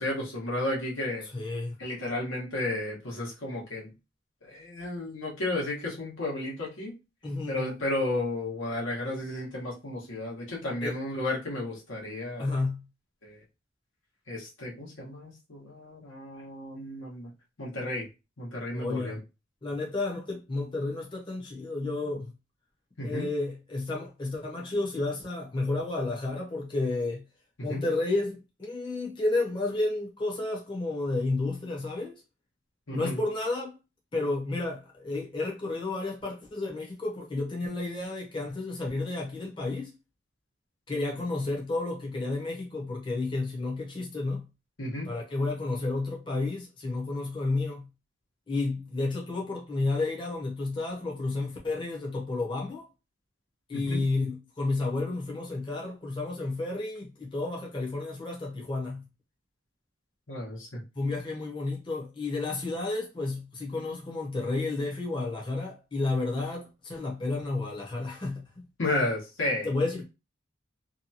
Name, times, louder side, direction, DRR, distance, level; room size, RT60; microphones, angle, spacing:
voice 1, 0.0-1.3 1.8-3.9 4.4-6.9 7.5-12.6 13.2-13.4 14.3-17.3 17.6-18.1 18.4-19.2 23.0-23.3 27.7-27.8 32.9-33.2 44.8-45.1 53.7-54.0 60.3-60.8 68.8-69.7, left 1 dB, 85° left, 1.1 m, -33 dB
voice 2, 1.2-1.8 7.2-7.7 10.8-11.0 12.4-12.8 18.7-19.2 19.6-22.3 23.0-27.2 27.6-32.2 32.9-33.7 34.1-39.9 40.9-44.5 45.0-47.9 48.5-52.8 53.7-59.0 61.0-68.6 69.6-70.0, left 2 dB, 25° left, 0.6 m, -31 dB
2.7 x 2.3 x 2.7 m
head